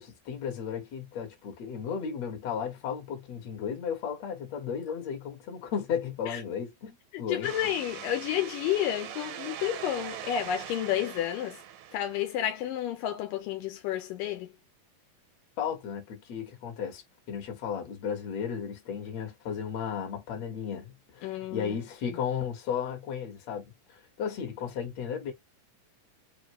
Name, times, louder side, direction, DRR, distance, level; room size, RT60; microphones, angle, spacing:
voice 1, 0.0-7.5 15.6-17.0 17.3-25.3, left 7 dB, 60° left, 2.3 m, -34 dB
voice 2, 7.1-11.6 11.9-14.5 21.2-21.7, left 11 dB, 80° left, 2.4 m, -31 dB
sound 1, 7.4-12.6, right 10 dB, 85° right, 2.4 m, -42 dB
5.4 x 2.5 x 3.1 m
omnidirectional pair, 3.9 m